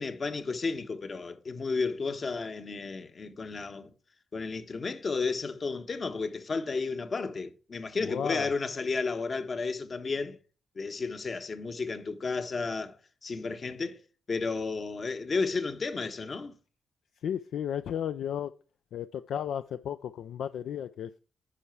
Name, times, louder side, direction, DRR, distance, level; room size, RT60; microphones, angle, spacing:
voice 1, 0.0-3.9 4.3-10.4 10.7-13.0 13.2-14.0 14.3-16.5, left 4 dB, 50° left, 1.2 m, -32 dB
voice 2, 8.0-8.5 17.2-18.5 18.9-21.1, left 9 dB, 75° left, 0.4 m, -34 dB
10.0 x 5.6 x 4.7 m
hypercardioid pair, 40°, 0 cm